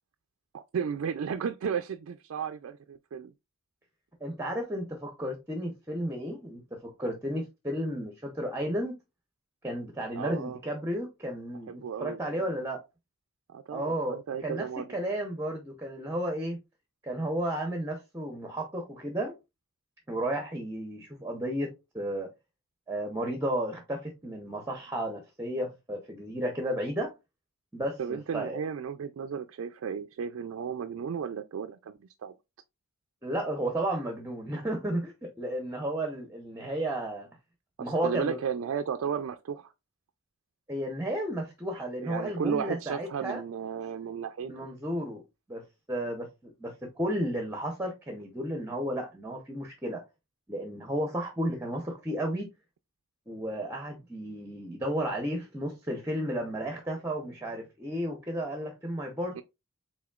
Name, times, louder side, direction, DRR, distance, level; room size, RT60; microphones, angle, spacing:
voice 1, 0.5-3.3 10.1-10.6 11.7-12.5 13.5-14.9 28.0-32.3 37.8-39.7 42.0-44.7 59.4-59.5, right 7 dB, 70° right, 0.3 m, -34 dB
voice 2, 4.2-9.0 9.6-12.8 13.7-16.6 17.0-19.3 20.1-22.3 22.9-27.1 27.7-28.6 33.2-37.3 37.8-38.4 40.7-43.4 44.4-45.2 45.5-50.0 50.5-52.5 53.3-59.4, right 1 dB, 10° right, 0.7 m, -33 dB
4.9 x 3.6 x 2.3 m
head